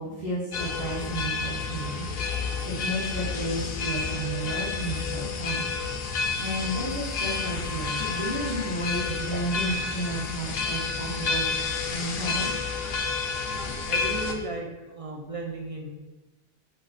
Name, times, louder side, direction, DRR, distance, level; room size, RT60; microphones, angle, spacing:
voice 1, 0.0-2.1 2.6-5.7 6.4-11.5 11.9-12.5, right 1 dB, 75° right, -10 dB, 1.5 m, -32 dB
sound 1, 0.5-14.3, left 4 dB, 75° left, 0.8 m, -30 dB
voice 2, 13.9-15.9, right 2 dB, 45° right, 0 dB, 0.5 m, -35 dB
4.9 x 2.7 x 4.0 m, 1.1 s
omnidirectional pair, 1.0 m